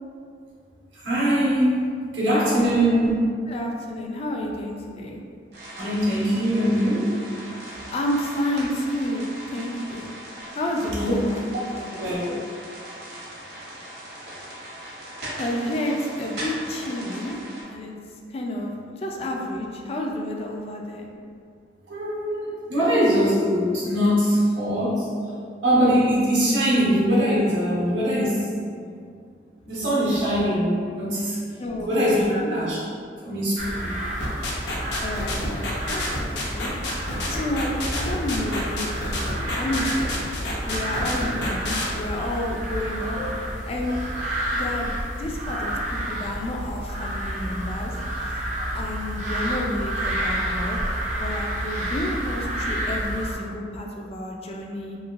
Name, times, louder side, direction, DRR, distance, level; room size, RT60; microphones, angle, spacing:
voice 1, 0.9-1.8 2.1-3.1 5.8-7.1 11.0-11.1 12.0-12.3 21.9-22.4 22.7-25.1 25.6-28.5 29.7-31.4 31.9-32.8 33.2-33.9 43.1-43.2, equal, 85° right, -7 dB, 1.1 m, -22 dB
voice 2, 2.5-2.8 3.5-5.2 7.7-10.2 10.5-12.2 15.3-17.4 17.7-17.9 18.3-21.1 31.6-32.5 35.0-35.6 35.9-36.0 36.5-39.1 39.3-39.9 40.6-43.2 43.6-44.0 44.5-44.9 45.2-50.8 51.2-55.0, left 1 dB, 35° left, 0 dB, 0.3 m, -30 dB
sound 1, 5.5-17.6, right 1 dB, 60° right, 0.9 m, -39 dB
sound 2, 33.6-53.4, right 1 dB, 45° right, 0.5 m, -30 dB
sound 3, 34.2-41.8, left 2 dB, 70° left, 0.6 m, -29 dB
3.0 x 2.9 x 2.4 m, 2.2 s
head